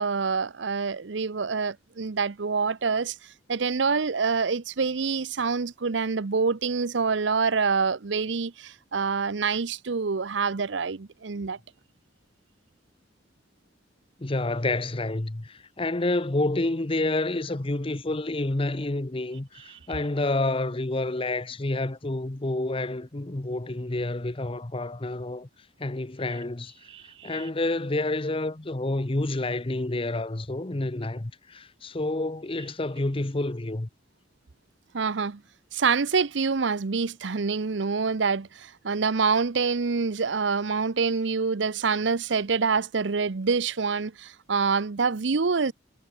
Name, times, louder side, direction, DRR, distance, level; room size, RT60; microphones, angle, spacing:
voice 1, 0.0-3.2 3.5-11.6 19.7-19.8 26.9-27.4 34.9-35.4 35.7-45.7, right 5 dB, 70° right, 0.7 m, -26 dB
voice 2, 14.2-25.5 25.8-26.7 27.2-33.9, left 2 dB, 30° left, 0.9 m, -29 dB
head